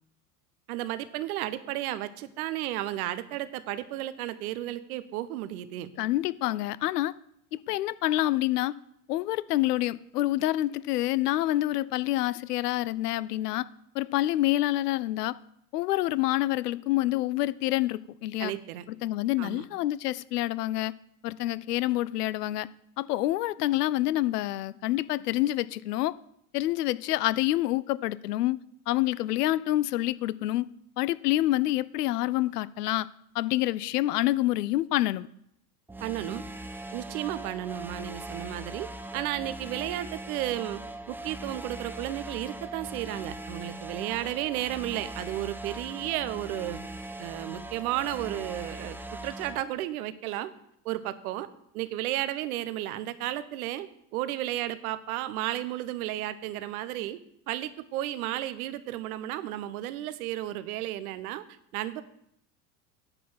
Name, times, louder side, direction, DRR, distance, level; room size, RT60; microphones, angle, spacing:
voice 1, 0.7-5.9 18.4-18.8 19.4-19.6 36.0-36.4 36.9-40.8 41.1-46.8 47.2-49.0 49.2-50.5 50.8-51.5 51.7-53.9 54.1-57.2 57.5-61.4 61.7-62.0, right 14 dB, 65° right, 14 dB, 0.9 m, -33 dB
voice 2, 6.0-7.1 7.5-8.7 9.1-13.7 13.9-15.4 15.7-18.5 19.0-20.9 21.2-22.7 23.0-26.1 26.5-28.6 28.9-30.7 31.0-33.1 33.3-35.3, left 16 dB, 80° left, 19 dB, 0.6 m, -27 dB
sound 1, 35.9-49.6, right 1 dB, 5° right, 0.5 m, -40 dB
9.9 x 4.3 x 7.5 m, 0.72 s
hypercardioid pair, 90°, 46 cm